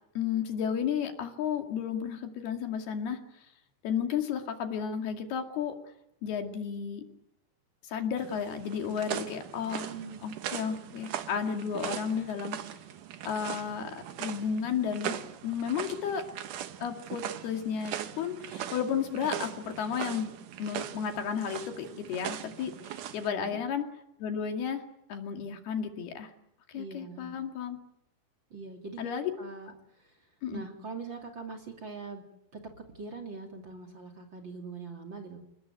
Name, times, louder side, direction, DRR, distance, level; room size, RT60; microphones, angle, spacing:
voice 1, 0.2-3.2 3.8-5.8 6.2-7.1 7.9-9.9 10.2-12.6 13.3-15.2 15.4-16.3 16.8-20.3 20.6-22.7 23.1-23.8 24.2-24.8 25.1-26.3 26.7-27.8 29.0-29.3 30.4-30.6, left 7 dB, 80° left, 5 dB, 4.3 m, -33 dB
sound 1, 8.2-23.3, right 10 dB, 65° right, 2.4 m, -40 dB
voice 2, 9.8-10.2 23.3-23.6 26.7-27.3 28.5-29.1 29.4-32.2 32.5-32.6 32.9-35.4, right 4 dB, 30° right, 3 dB, 3.1 m, -42 dB
29.0 x 19.0 x 9.5 m, 0.80 s
omnidirectional pair, 4.5 m